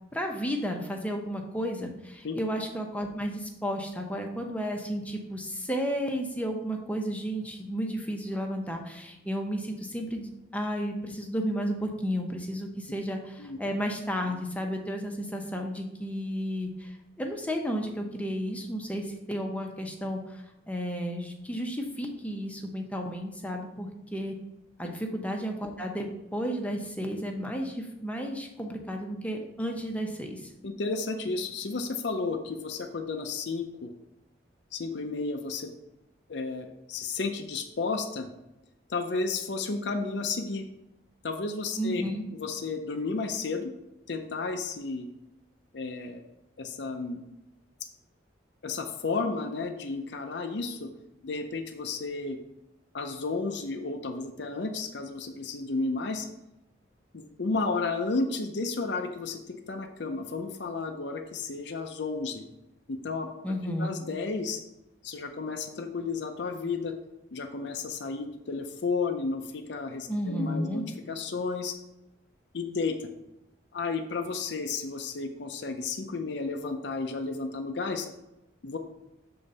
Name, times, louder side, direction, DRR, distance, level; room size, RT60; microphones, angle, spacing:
voice 1, 0.1-24.4 24.8-30.5 41.8-42.2 63.4-63.9 70.1-70.8, equal, 5° left, 2 dB, 0.8 m, -33 dB
voice 2, 30.6-33.9 34.7-35.7 36.3-38.3 38.9-40.7 41.2-42.0 42.3-43.7 44.1-45.1 45.7-46.2 46.6-47.2 48.6-50.9 51.2-52.4 52.9-56.3 57.1-62.4 62.9-63.3 63.6-64.6 65.0-66.9 67.3-71.7 72.5-73.1 73.7-78.1 78.6-78.8, left 4 dB, 60° left, 5 dB, 0.6 m, -32 dB
7.1 x 3.9 x 5.3 m, 0.91 s
head